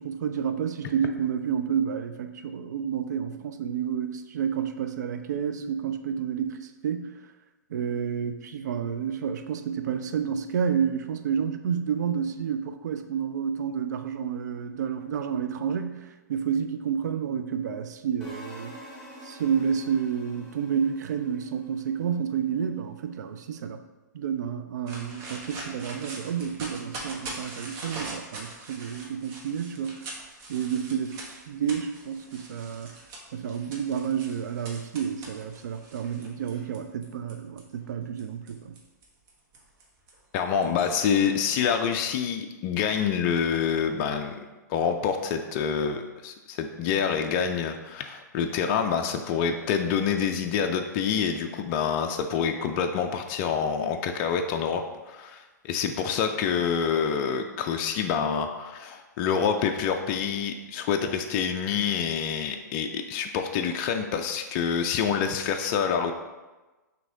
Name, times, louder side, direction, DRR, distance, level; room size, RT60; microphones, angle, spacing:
voice 1, 0.0-7.2 7.7-18.8 19.2-23.8 24.1-30.0 30.5-32.9 33.3-38.8, right 7 dB, 65° right, 8 dB, 0.4 m, -30 dB
sound 1, 18.2-22.3, equal, 5° left, 1.5 m, -46 dB
sound 2, 24.9-37.6 38.2-42.0, right 2 dB, 35° right, 1.0 m, -42 dB
voice 2, 40.3-44.4 44.7-66.1, left 7 dB, 40° left, 5 dB, 0.4 m, -27 dB
5.9 x 2.8 x 2.7 m, 1.2 s
hypercardioid pair, 115°, 10 cm